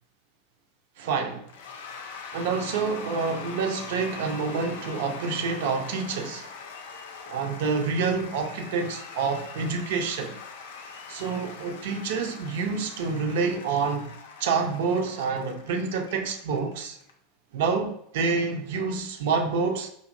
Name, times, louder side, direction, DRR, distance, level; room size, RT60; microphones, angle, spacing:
voice 1, 1.0-1.5 2.3-6.5 7.3-10.4 11.1-14.1 14.4-17.0 17.5-19.9, right 5 dB, 55° right, 4 dB, 0.5 m, -28 dB
Cheering / Applause / Crowd, 1.5-17.1, left 5 dB, 65° left, 0.5 m, -42 dB
5.2 x 2.8 x 2.5 m, 0.73 s
figure-of-eight pair, 80°, 0 cm